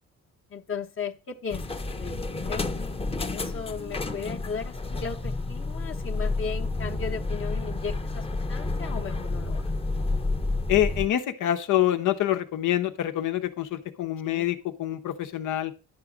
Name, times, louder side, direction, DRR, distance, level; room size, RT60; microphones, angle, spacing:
voice 1, 0.5-2.9 3.3-9.7 14.2-14.5, left 6 dB, 45° left, 2 dB, 1.0 m, -36 dB
sound 1, 1.5-11.1, left 2 dB, 20° left, 0.8 m, -30 dB
voice 2, 10.7-15.7, left 12 dB, 80° left, 9 dB, 1.0 m, -26 dB
10.5 x 3.8 x 7.3 m, 0.35 s
cardioid pair, 90°, 30 cm